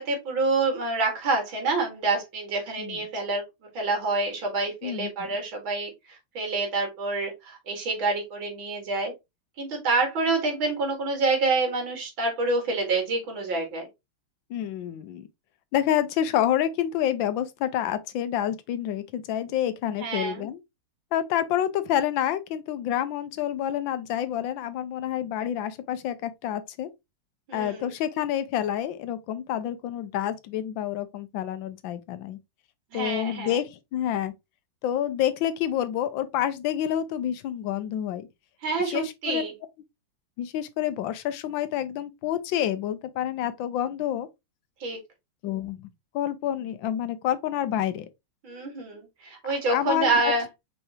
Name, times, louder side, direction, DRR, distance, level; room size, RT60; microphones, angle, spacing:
voice 1, 0.0-3.4 3.7-5.9 6.3-9.1 9.6-13.9 20.0-20.5 27.5-27.9 32.9-33.6 38.6-39.5 44.8-45.0 48.4-50.5, right 3 dB, 75° right, 2.6 m, -27 dB
voice 2, 4.8-5.3 14.5-15.3 15.7-20.6 21.1-26.9 27.5-32.4 32.9-34.3 34.8-38.3 38.8-39.4 40.4-44.3 45.4-45.9 46.1-48.1 49.7-50.3, left 10 dB, 75° left, 1.4 m, -28 dB
5.6 x 3.3 x 2.8 m
omnidirectional pair, 2.1 m